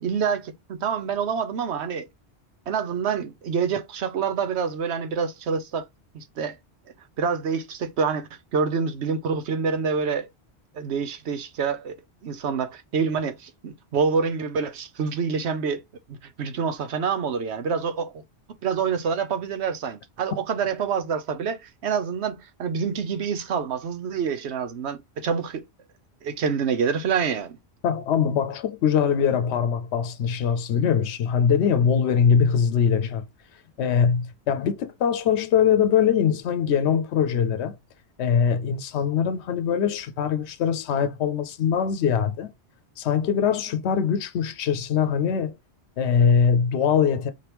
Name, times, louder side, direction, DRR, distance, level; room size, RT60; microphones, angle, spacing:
voice 1, 0.0-2.1 2.7-5.9 6.1-6.6 7.2-10.3 10.7-11.9 12.2-15.8 16.1-18.1 18.6-25.6 26.2-27.6, right 6 dB, 80° right, 1.0 m, -27 dB
voice 2, 27.8-33.3 33.8-37.8 38.2-42.5 43.0-45.6 46.0-47.3, left 7 dB, 85° left, 0.9 m, -22 dB
4.8 x 3.0 x 3.3 m
omnidirectional pair, 1.1 m